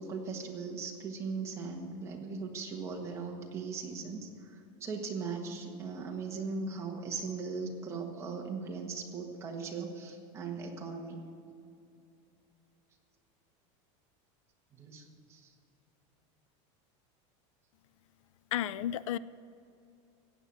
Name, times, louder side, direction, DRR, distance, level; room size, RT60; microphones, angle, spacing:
voice 1, 0.0-4.3 4.8-11.2 14.8-15.4, right 4 dB, 15° right, 0 dB, 1.4 m, -39 dB
voice 2, 18.5-19.2, left 12 dB, 80° left, 18 dB, 0.4 m, -32 dB
15.5 x 9.1 x 6.5 m, 2.6 s
supercardioid pair, 180°, 16 cm